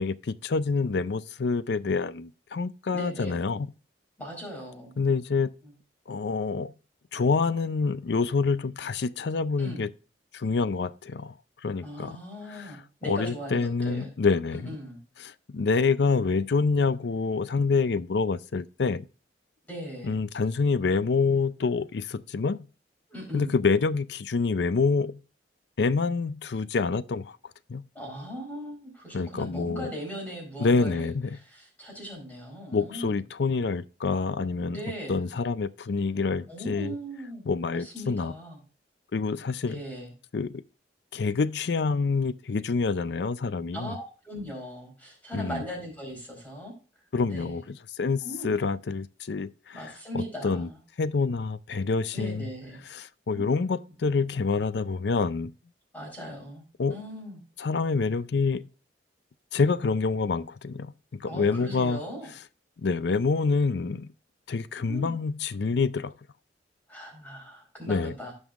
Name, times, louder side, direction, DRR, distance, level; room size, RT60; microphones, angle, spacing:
voice 1, 0.0-3.7 5.0-5.5 6.1-6.7 7.1-9.9 10.3-11.3 11.6-12.2 12.5-12.7 13.1-14.8 15.2-19.1 20.0-22.7 23.3-25.2 25.8-27.4 27.7-27.8 29.1-29.9 30.6-31.4 32.7-34.8 35.1-36.9 37.5-38.3 39.1-39.8 40.3-40.6 41.1-44.0 45.3-45.6 47.1-49.8 50.1-50.7 51.0-52.5 52.9-55.5 56.8-56.9 57.6-58.7 59.5-62.0 62.8-64.1 64.5-66.1 67.9-68.1, left 4 dB, 65° left, 0.5 m, -27 dB
voice 2, 2.9-3.4 4.2-5.0 5.6-5.7 9.6-9.9 11.7-14.1 14.5-15.0 19.7-20.2 23.1-23.6 27.9-33.2 34.7-35.2 36.5-37.4 37.7-38.6 39.7-40.1 43.7-46.7 47.3-47.6 48.2-48.5 49.7-50.8 52.1-52.8 53.3-53.4 55.9-57.4 61.3-62.3 64.9-65.1 66.9-68.3, equal, 10° left, 4.4 m, -39 dB
16.0 x 5.4 x 2.4 m
head